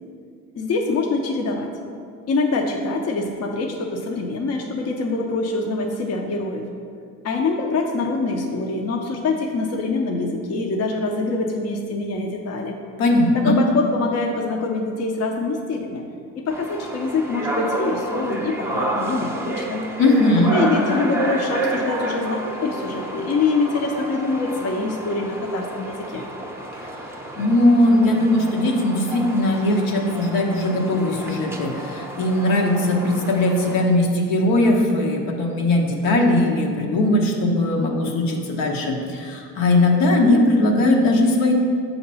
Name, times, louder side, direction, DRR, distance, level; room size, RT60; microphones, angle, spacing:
voice 1, 0.5-1.7 2.3-6.7 7.2-12.8 13.3-16.0 16.3-19.8 20.5-26.2, left 3 dB, 45° left, 2 dB, 0.6 m, -24 dB
voice 2, 13.0-13.6 20.0-20.6 27.4-41.5, left 1 dB, 75° left, 0 dB, 1.0 m, -19 dB
sound 1, 16.5-33.8, right 1 dB, 5° right, 0.6 m, -30 dB
6.5 x 2.9 x 5.4 m, 2.3 s
cardioid pair, 95°, 35 cm